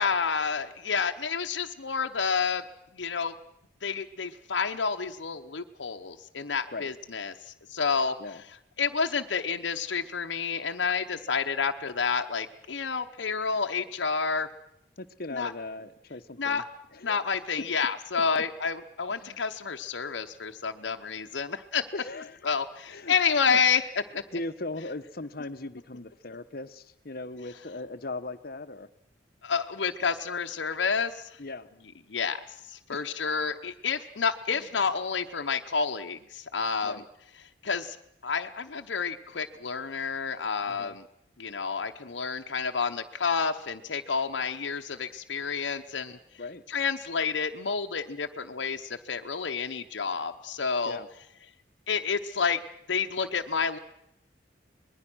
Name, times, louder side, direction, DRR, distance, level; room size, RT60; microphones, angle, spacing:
voice 1, 0.0-2.6 2.9-3.3 3.8-8.1 8.8-14.5 15.3-15.5 16.4-16.6 17.0-21.9 22.4-23.9 24.1-24.2 29.4-31.4 32.1-36.9 37.6-38.0 38.2-41.0 41.4-46.2 46.7-51.0 51.9-52.6 52.9-53.8, left 5 dB, 85° left, 4 dB, 0.9 m, -29 dB
voice 2, 15.0-16.6 16.9-17.2 19.2-19.4 21.9-22.4 22.9-23.1 23.5-23.6 24.3-28.9 31.4-31.7 32.9-33.3 36.8-37.1 40.7-40.9 46.4-46.6 50.8-51.1, left 2 dB, 55° left, 12 dB, 1.1 m, -39 dB
25.5 x 20.5 x 6.2 m, 0.78 s
head